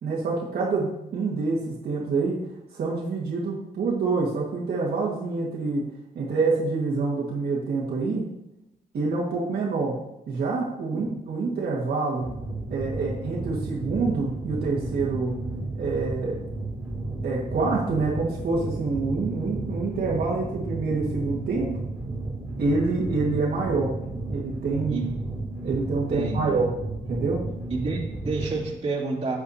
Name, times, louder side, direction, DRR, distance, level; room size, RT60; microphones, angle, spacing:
voice 1, 0.0-2.4 2.7-5.8 6.2-8.2 8.9-9.9 10.3-12.3 12.7-15.3 15.7-16.4 17.2-21.7 22.6-24.0 24.3-25.0 25.6-26.7 27.1-27.4, right 3 dB, 70° right, -5 dB, 1.8 m, -26 dB
sound 1, 12.2-28.6, right 2 dB, 5° right, 2.9 m, -33 dB
voice 2, 26.1-26.6 27.7-29.4, right 3 dB, 35° right, -5 dB, 2.4 m, -30 dB
8.5 x 8.1 x 2.8 m, 0.86 s
cardioid pair, 120°, 17 cm